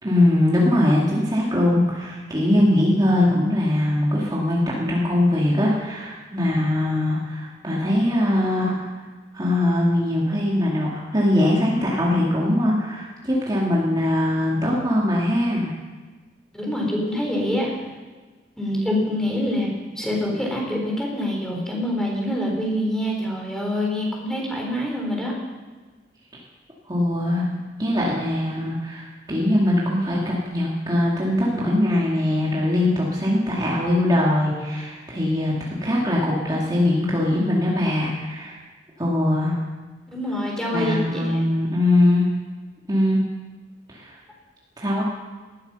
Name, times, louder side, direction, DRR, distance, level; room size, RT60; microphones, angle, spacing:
voice 1, 0.0-8.9 9.3-15.7 26.8-27.5 27.8-38.6 39.0-39.6 40.7-42.3 42.9-43.2 43.9-44.1 44.8-45.0, left 1 dB, 25° right, -5 dB, 2.6 m, -21 dB
voice 2, 16.5-17.8 18.6-25.3 40.1-41.4, left 1 dB, 5° left, -1 dB, 4.0 m, -25 dB
19.5 x 12.5 x 5.7 m, 1.3 s
head